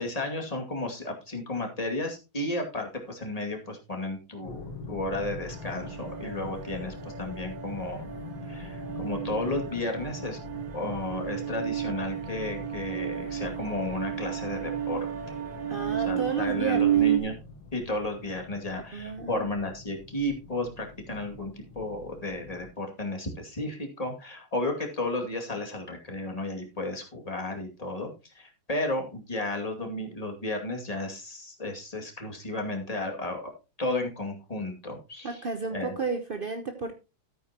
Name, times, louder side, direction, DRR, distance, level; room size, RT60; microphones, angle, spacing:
voice 1, 0.0-8.1 8.5-10.4 10.7-15.1 16.0-17.4 17.7-33.4 33.8-35.4 35.7-35.9, left 2 dB, 20° left, 2 dB, 2.3 m, -33 dB
sound 1, 4.4-22.7, left 3 dB, 85° left, 2.5 m, -44 dB
sound 2, 5.5-17.2, right 11 dB, 65° right, 2.3 m, -32 dB
voice 2, 15.7-17.2 18.9-19.5 35.2-36.9, right 4 dB, 50° right, 6 dB, 0.6 m, -33 dB
13.5 x 9.1 x 2.9 m, 0.28 s
omnidirectional pair, 2.3 m